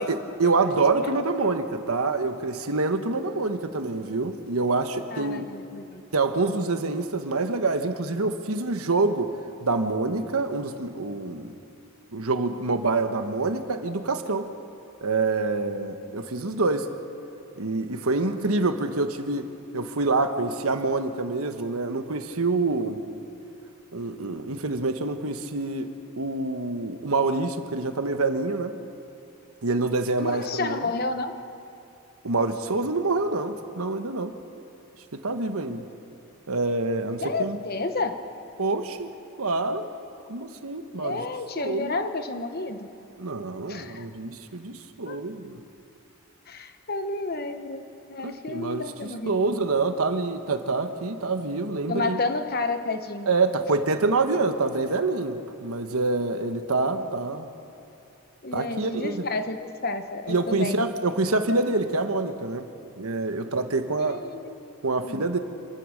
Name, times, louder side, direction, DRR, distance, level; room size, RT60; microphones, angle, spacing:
voice 1, 0.0-5.5 6.1-9.3 9.6-11.5 12.1-14.5 15.0-16.9 17.6-23.0 23.9-28.8 29.6-30.9 32.2-34.4 35.1-35.8 36.5-37.6 38.6-39.1 39.4-39.9 40.3-41.2 41.6-41.9 43.2-45.6 48.2-48.9 49.3-52.2 53.3-57.5 58.5-59.3 60.3-62.7 63.0-64.2 64.8-65.4, right 3 dB, 80° right, 7 dB, 1.3 m, -26 dB
voice 2, 5.1-6.0 6.5-6.6 15.8-15.9 30.2-31.3 37.2-38.2 40.9-42.9 43.7-44.1 45.0-45.2 46.5-49.7 51.9-53.3 58.4-60.8 64.0-64.7 65.0-65.2, left 3 dB, 45° left, 8 dB, 1.1 m, -31 dB
27.0 x 15.5 x 6.6 m, 2.7 s
head